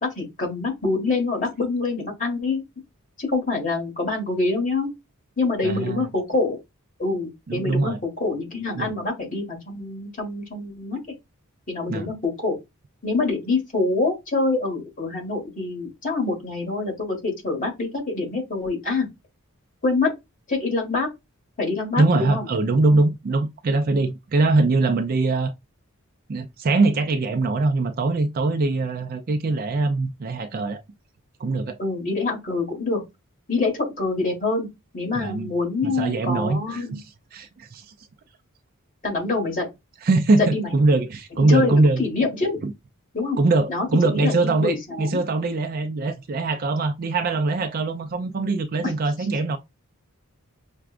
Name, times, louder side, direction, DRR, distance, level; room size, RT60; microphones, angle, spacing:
voice 1, 0.0-2.6 3.2-4.9 5.4-6.6 7.0-11.0 11.7-12.5 13.0-19.1 19.8-20.1 20.5-21.1 21.6-22.5 31.8-33.0 33.5-34.7 34.9-37.0 39.0-39.7 40.4-40.7 41.4-42.6 43.1-43.4 43.7-45.2 48.8-48.9, left 3 dB, 35° left, 1.6 m, -25 dB
voice 2, 5.6-6.1 7.5-8.0 8.8-8.9 11.9-12.1 22.0-25.5 26.3-30.8 31.4-31.8 35.1-35.5 35.8-37.0 37.3-37.9 40.0-42.0 42.6-42.7 43.4-49.6, right 3 dB, 40° right, 0.4 m, -22 dB
5.8 x 2.3 x 2.4 m
head